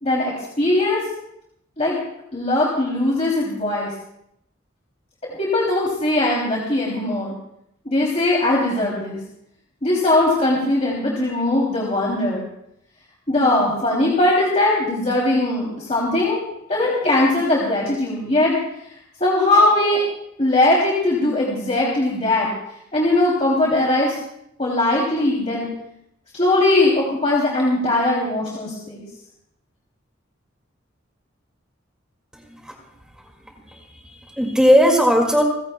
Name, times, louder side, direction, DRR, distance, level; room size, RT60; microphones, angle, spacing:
voice 1, 0.0-1.0 1.8-2.0 2.3-3.9 5.2-7.3 7.8-9.2 9.8-12.4 13.3-16.4 16.7-18.6 19.2-20.0 20.4-22.5 22.9-24.2 24.6-25.7 26.3-29.0, left 2 dB, 35° left, -4 dB, 2.8 m, -20 dB
voice 2, 32.3-32.8 33.4-35.4, equal, 5° right, 1 dB, 2.0 m, -18 dB
29.5 x 15.5 x 2.2 m, 0.75 s
head